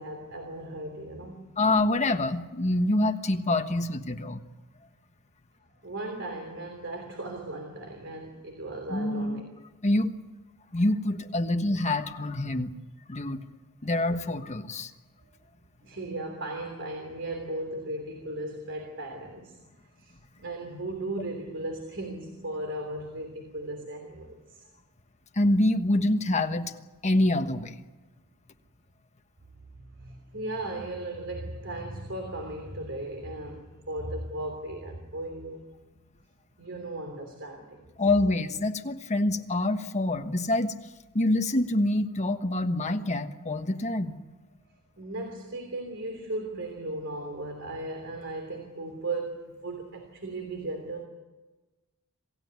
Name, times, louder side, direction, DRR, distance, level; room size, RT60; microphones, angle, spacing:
voice 1, 0.0-1.5 5.8-9.4 15.8-19.6 20.0-24.7 29.8-35.6 36.6-37.9 45.0-51.1, right 2 dB, 55° right, 4 dB, 3.2 m, -36 dB
voice 2, 1.6-4.4 8.9-9.4 9.8-10.1 10.7-12.7 13.1-13.4 13.8-14.9 25.3-26.7 27.0-27.8 38.0-40.7 41.1-44.2, left 1 dB, 30° left, 6 dB, 1.3 m, -26 dB
27.0 x 16.0 x 9.6 m, 1.2 s
head